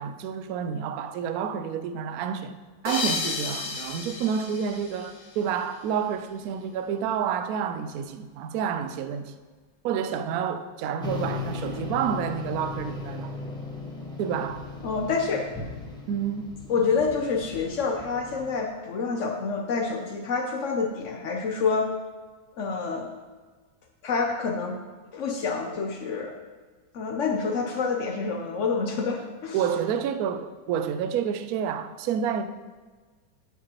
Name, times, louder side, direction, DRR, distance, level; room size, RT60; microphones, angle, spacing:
voice 1, 0.0-2.6 2.8-9.3 9.8-13.3 14.2-14.7 16.1-16.5 29.5-32.5, right 8 dB, 80° right, 0.8 m, -29 dB
sound 1, 2.8-5.9, left 4 dB, 50° left, 1.0 m, -33 dB
sound 2, 11.0-18.7, left 3 dB, 5° left, 0.9 m, -37 dB
voice 2, 14.8-15.5 16.7-21.9 22.6-23.1 24.0-24.8 25.1-26.3 26.9-29.6, left 4 dB, 70° left, 0.7 m, -27 dB
11.0 x 5.9 x 2.9 m
omnidirectional pair, 2.1 m